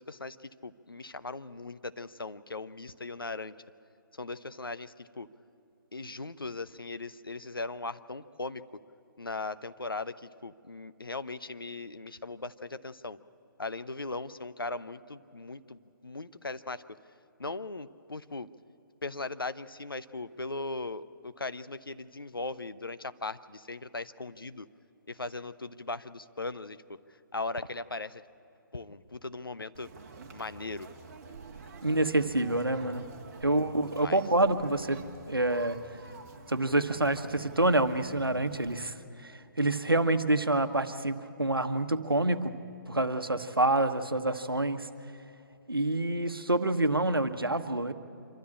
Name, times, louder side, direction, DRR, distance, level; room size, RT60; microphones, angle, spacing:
voice 1, 0.0-3.6 4.1-5.3 5.9-8.8 9.2-13.2 13.6-17.0 17.4-18.5 19.0-24.7 25.1-27.0 27.3-28.2 28.7-29.9 30.3-30.9 33.9-34.2, left 3 dB, 80° left, 13 dB, 0.7 m, -39 dB
Conversation, 29.7-38.8, right 4 dB, 40° right, 1.8 m, -48 dB
voice 2, 31.8-33.1 33.4-35.9 36.5-38.9 39.2-39.3 39.6-44.9 45.7-47.9, right 2 dB, 90° right, 9 dB, 1.1 m, -27 dB
25.5 x 13.0 x 8.7 m, 2.8 s
figure-of-eight pair, 140°, 12 cm